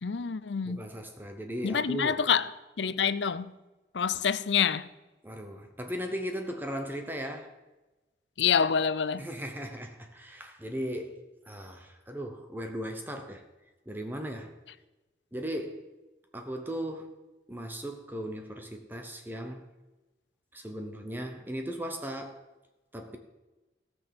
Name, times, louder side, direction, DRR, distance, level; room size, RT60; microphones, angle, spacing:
voice 1, 0.0-0.9 1.6-2.5 2.8-3.5 3.9-4.9 8.4-9.3, left 7 dB, 80° left, 0.6 m, -27 dB
voice 2, 0.6-2.2 5.2-7.6 9.2-11.2 11.4-13.4 13.9-14.6 15.3-15.9 16.3-17.2 17.5-19.7 20.5-22.4 22.9-23.2, equal, 10° right, 1.0 m, -37 dB
17.5 x 6.2 x 7.0 m
head